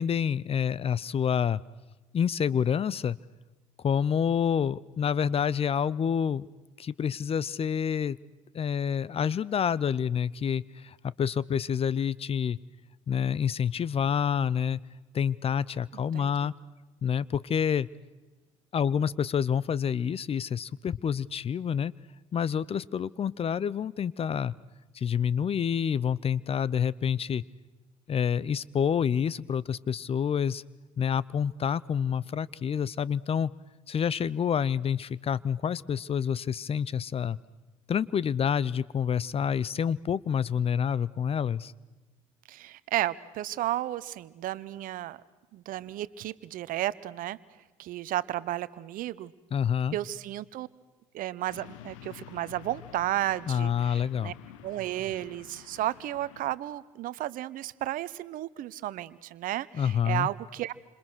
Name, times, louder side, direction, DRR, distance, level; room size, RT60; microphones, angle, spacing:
voice 1, 0.0-1.6 2.1-3.2 3.8-6.5 6.8-8.2 8.5-12.6 13.1-14.8 15.1-16.5 17.0-17.9 18.7-21.9 22.3-24.5 24.9-27.4 28.1-30.6 31.0-33.5 33.9-37.4 37.9-41.7 49.5-50.0 53.5-54.3 59.7-60.3, left 8 dB, 35° left, 21 dB, 0.7 m, -28 dB
voice 2, 15.9-16.5 42.5-45.2 45.5-47.4 47.8-49.3 49.9-50.7 51.1-54.3 54.6-60.7, right 14 dB, 60° right, 17 dB, 1.0 m, -33 dB
sound 1, 51.5-56.6, left 13 dB, 75° left, 1.2 m, -49 dB
28.5 x 26.5 x 6.3 m, 1.2 s
hypercardioid pair, 60°, 16 cm